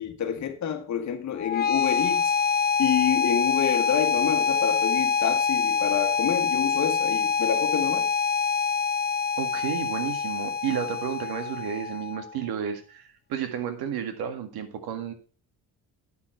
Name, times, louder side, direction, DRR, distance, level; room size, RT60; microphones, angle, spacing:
voice 1, 0.0-2.3 2.8-8.1, left 9 dB, 50° left, 1.6 m, -28 dB
sound 1, 1.4-12.4, left 6 dB, 30° left, 0.4 m, -25 dB
voice 2, 9.4-15.1, right 8 dB, 85° right, 1.8 m, -32 dB
9.5 x 6.3 x 4.5 m
cardioid pair, 145°, 37 cm